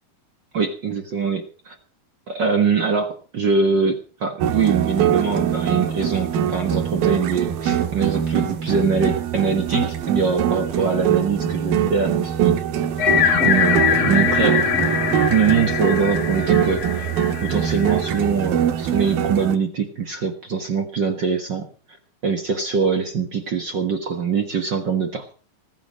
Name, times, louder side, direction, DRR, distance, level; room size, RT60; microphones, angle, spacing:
voice 1, 0.5-1.7 2.3-12.6 13.4-14.6 15.3-17.1 17.4-21.7 22.2-25.3, right 5 dB, 55° right, 7 dB, 1.2 m, -23 dB
sound 1, 4.4-19.6, right 9 dB, 85° right, 3.0 m, -23 dB
sound 2, 13.0-18.2, left 8 dB, 50° left, 2.8 m, -22 dB
20.0 x 8.1 x 6.4 m, 0.38 s
omnidirectional pair, 4.2 m